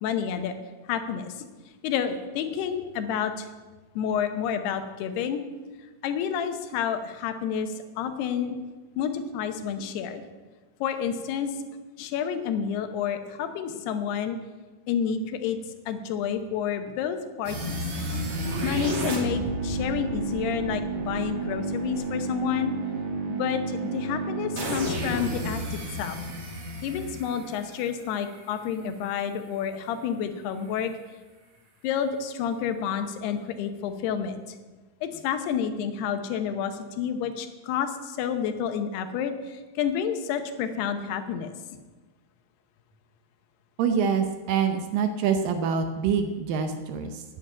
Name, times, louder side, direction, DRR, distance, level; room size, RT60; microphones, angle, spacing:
voice 1, 0.0-0.5 0.9-1.3 1.8-3.5 4.0-5.4 6.0-8.6 9.0-10.2 10.8-11.5 12.0-14.4 14.9-15.6 15.9-17.8 18.6-22.7 23.3-26.2 26.8-30.9 31.8-34.6 35.0-41.5, left 8 dB, 85° left, 8 dB, 3.0 m, -29 dB
sound 1, 17.4-28.4, right 2 dB, 50° right, 3.2 m, -31 dB
voice 2, 43.8-47.2, right 6 dB, 75° right, 7 dB, 2.2 m, -25 dB
9.3 x 8.9 x 8.7 m, 1.2 s
omnidirectional pair, 4.5 m